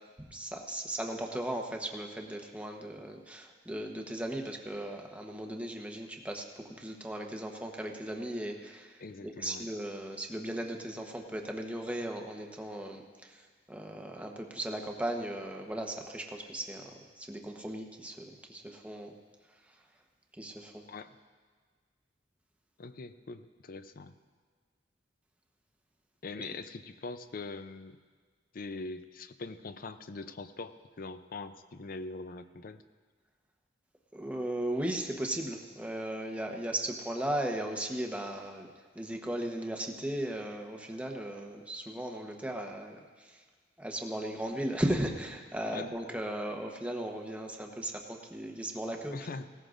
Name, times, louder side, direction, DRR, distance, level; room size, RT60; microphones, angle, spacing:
voice 1, 0.3-19.2 20.3-20.8 34.1-38.7 38.9-43.4 43.8-49.2, right 1 dB, 10° right, 2 dB, 1.0 m, -37 dB
voice 2, 9.0-9.7 20.9-21.2 22.8-24.1 26.2-28.0 28.5-32.8 45.7-45.9 49.1-49.5, left 3 dB, 55° left, 11 dB, 0.5 m, -42 dB
18.0 x 14.5 x 2.5 m, 1.5 s
head